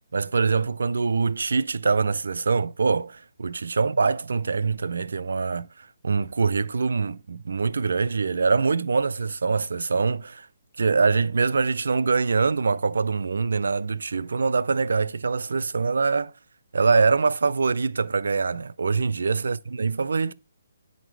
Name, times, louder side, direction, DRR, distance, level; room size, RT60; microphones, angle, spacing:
voice 1, 0.1-10.5 10.8-16.3 16.7-20.3, right 4 dB, 75° right, 0.4 m, -24 dB
9.7 x 4.2 x 4.6 m
hypercardioid pair, 150°, 0 cm